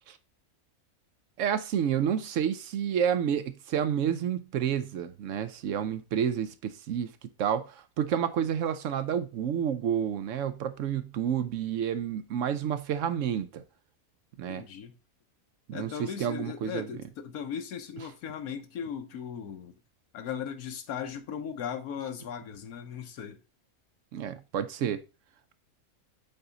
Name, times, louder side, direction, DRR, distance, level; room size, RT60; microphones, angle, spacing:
voice 1, 1.4-7.1 7.4-13.6 14.4-14.6 15.7-16.9 24.1-25.0, right 8 dB, 65° right, 0.9 m, -30 dB
voice 2, 14.5-14.9 15.7-19.7 20.1-23.4, left 8 dB, 85° left, 1.4 m, -37 dB
8.0 x 4.0 x 3.7 m
omnidirectional pair, 1.5 m